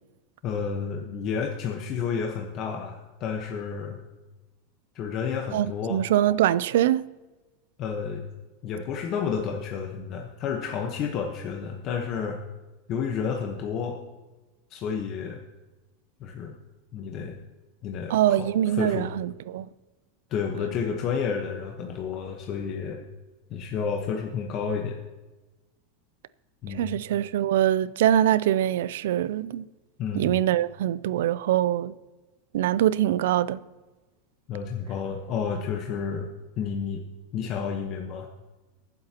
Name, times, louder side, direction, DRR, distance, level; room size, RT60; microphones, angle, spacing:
voice 1, 0.4-4.0 4.9-6.0 7.8-8.3 8.6-12.4 12.9-14.0 14.7-15.4 16.2-16.5 16.9-17.4 17.8-19.1 20.3-23.0 23.5-25.0 26.6-27.0 30.0-30.3 34.5-36.3 36.6-37.0 37.3-38.3, left 6 dB, 40° left, 1.1 m, -31 dB
voice 2, 5.5-7.0 18.1-19.7 26.7-29.7 30.1-31.9 32.5-33.6, right 12 dB, 80° right, 0.4 m, -23 dB
23.5 x 7.8 x 2.9 m
supercardioid pair, 150°, 0 cm